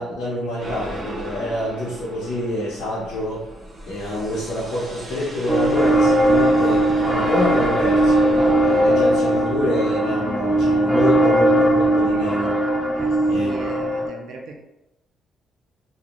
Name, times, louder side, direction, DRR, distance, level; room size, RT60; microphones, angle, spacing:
voice 1, 0.0-3.5 3.9-12.6 13.3-13.5, left 1 dB, 85° left, -7 dB, 0.6 m, -26 dB
sound 1, 0.6-9.4, right 1 dB, 45° right, 0.8 m, -35 dB
sound 2, 5.5-14.1, right 1 dB, ahead, 0.4 m, -19 dB
voice 2, 12.9-14.7, right 3 dB, 75° right, 1 dB, 0.4 m, -38 dB
2.5 x 2.0 x 2.9 m, 0.95 s
cardioid pair, 90°, 0 cm